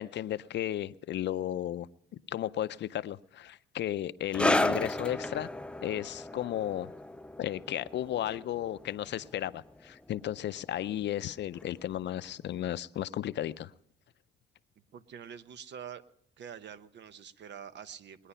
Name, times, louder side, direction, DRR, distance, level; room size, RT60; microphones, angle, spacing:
voice 1, 0.0-1.9 2.3-5.5 5.8-7.0 7.4-13.7, left 12 dB, 65° left, 16 dB, 0.5 m, -34 dB
sound 1, 4.3-11.3 11.6-11.8 12.6-12.7, left 1 dB, 5° left, 0.5 m, -34 dB
voice 2, 14.9-16.0 16.4-18.3, right 8 dB, 65° right, 13 dB, 0.9 m, -46 dB
21.0 x 10.0 x 5.6 m, 0.73 s
cardioid pair, 90°, 20 cm